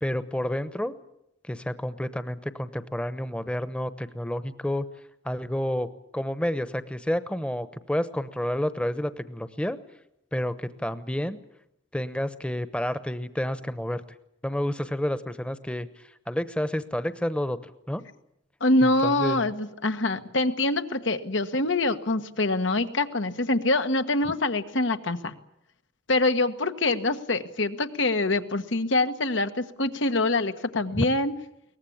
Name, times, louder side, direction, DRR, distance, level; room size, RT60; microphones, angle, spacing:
voice 1, 0.0-0.9 1.5-4.9 5.2-5.9 6.1-9.8 10.3-11.4 11.9-14.0 14.4-15.9 16.3-17.6 17.9-18.0 18.8-19.4 30.9-31.1, left 1 dB, 5° left, 12 dB, 0.9 m, -29 dB
voice 2, 18.6-25.3 26.1-31.3, left 2 dB, 85° left, 8 dB, 1.4 m, -25 dB
23.0 x 19.0 x 8.7 m, 0.81 s
head